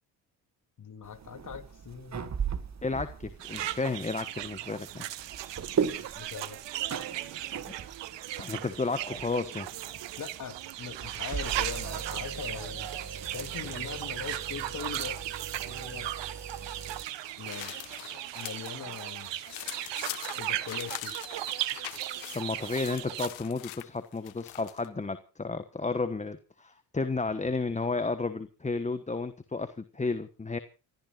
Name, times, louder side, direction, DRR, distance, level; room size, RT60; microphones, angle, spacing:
voice 1, 0.8-2.3 6.1-6.6 10.2-12.9 13.3-15.2 15.6-16.1 17.4-17.8 18.3-19.4 20.4-21.1, left 7 dB, 40° left, 6 dB, 3.0 m, -41 dB
sound 1, 1.0-17.0, right 6 dB, 35° right, 1.8 m, -39 dB
voice 2, 2.8-5.1 7.7-7.8 8.4-9.7 22.3-30.6, left 3 dB, 15° left, 10 dB, 1.3 m, -32 dB
sound 2, 3.4-23.3, right 13 dB, 70° right, 1.4 m, -37 dB
sound 3, 16.6-18.8 19.1-24.9, left 17 dB, 85° left, 1.5 m, -43 dB
29.5 x 14.0 x 2.5 m, 0.33 s
supercardioid pair, 80°, 45 cm